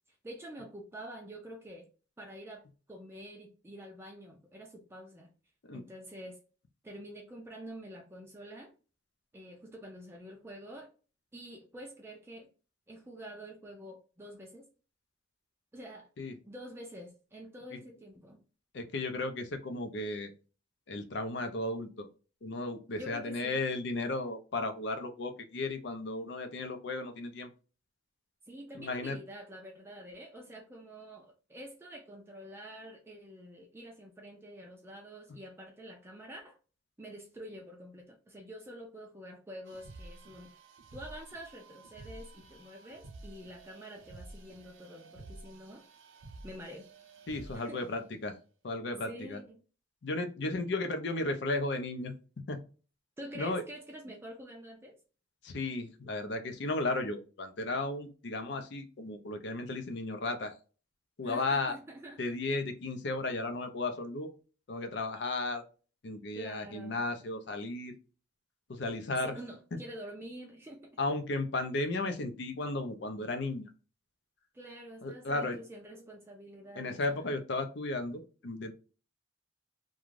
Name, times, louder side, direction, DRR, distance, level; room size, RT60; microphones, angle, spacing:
voice 1, 0.2-1.9 2.2-5.3 5.7-6.4 6.8-8.7 9.3-10.9 11.3-12.5 12.9-14.7 15.7-16.1 16.4-18.4 23.0-23.6 28.5-36.6 37.0-40.5 40.9-45.8 46.4-46.9 47.5-47.9 49.0-49.6 53.2-55.0 61.2-62.4 66.3-67.1 69.2-71.0 74.5-77.4, equal, 15° right, 1 dB, 0.4 m, -47 dB
voice 2, 18.7-20.3 20.9-22.1 22.4-27.5 28.8-29.2 47.3-48.4 48.6-49.4 50.0-52.1 52.5-52.6 53.3-53.6 55.4-60.5 61.2-61.8 62.2-64.3 64.7-65.6 66.0-67.9 68.7-69.3 69.7-69.8 71.0-73.7 75.0-75.6 76.8-78.7, left 2 dB, 60° left, 6 dB, 0.5 m, -34 dB
sound 1, 39.7-47.9, right 2 dB, 90° right, 0.5 m, -51 dB
2.5 x 2.3 x 3.1 m, 0.36 s
head